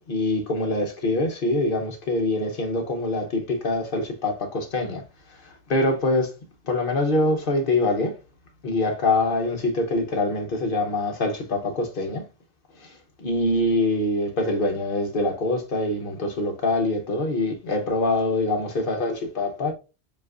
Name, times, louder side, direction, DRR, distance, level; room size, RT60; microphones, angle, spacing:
voice 1, 0.1-5.0 5.3-6.3 6.6-8.1 8.6-12.2 12.8-19.7, left 2 dB, 55° left, 1.0 m, -24 dB
7.3 x 2.5 x 2.4 m
omnidirectional pair, 1.1 m